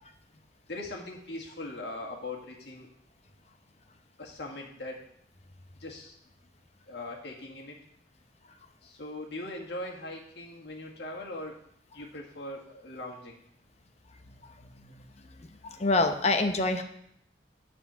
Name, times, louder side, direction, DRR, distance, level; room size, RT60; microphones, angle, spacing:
voice 1, 0.7-2.9 4.2-5.0 5.8-6.1 6.9-7.8 8.8-11.6 11.9-13.4, left 2 dB, 70° left, -1 dB, 2.0 m, -40 dB
voice 2, 15.4-16.8, left 2 dB, 40° left, 6 dB, 0.9 m, -27 dB
9.9 x 4.5 x 6.9 m, 0.70 s
head